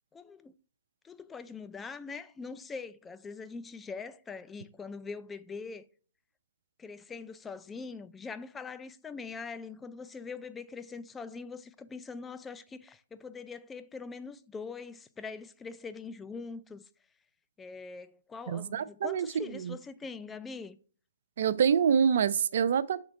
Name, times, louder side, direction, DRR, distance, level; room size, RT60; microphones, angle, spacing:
voice 1, 0.1-0.5 1.0-5.8 6.8-16.8 17.6-20.8, left 4 dB, 10° left, 0.4 m, -43 dB
voice 2, 18.5-19.7 21.4-23.0, right 7 dB, 60° right, 0.4 m, -26 dB
5.8 x 3.8 x 4.3 m
hypercardioid pair, 135°, 0 cm